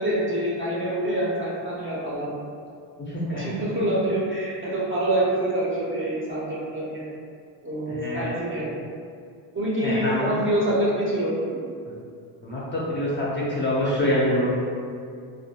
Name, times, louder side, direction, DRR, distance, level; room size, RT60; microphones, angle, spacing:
voice 1, 0.0-2.4 3.4-7.0 7.6-8.7 9.5-11.6, right 1 dB, 30° right, -6 dB, 0.5 m, -26 dB
voice 2, 3.0-3.5 7.9-8.3 9.8-10.3 11.9-12.0 12.4-14.5, left 1 dB, 25° left, -7 dB, 0.4 m, -26 dB
2.3 x 2.1 x 2.7 m, 2.3 s
cardioid pair, 110°, 45 cm